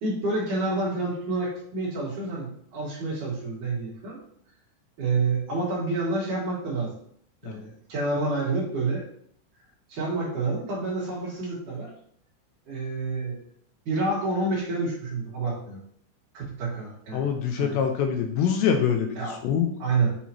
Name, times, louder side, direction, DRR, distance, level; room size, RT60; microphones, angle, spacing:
voice 1, 0.0-4.2 5.0-6.9 7.4-9.1 9.9-11.9 12.7-13.4 13.9-15.8 16.3-17.3 17.6-17.8 19.2-19.4 19.8-20.2, right 3 dB, 60° right, -3 dB, 2.3 m, -28 dB
voice 2, 17.1-19.1 19.4-19.7, left 7 dB, 80° left, 4 dB, 2.6 m, -24 dB
7.5 x 7.0 x 2.8 m, 0.65 s
omnidirectional pair, 5.7 m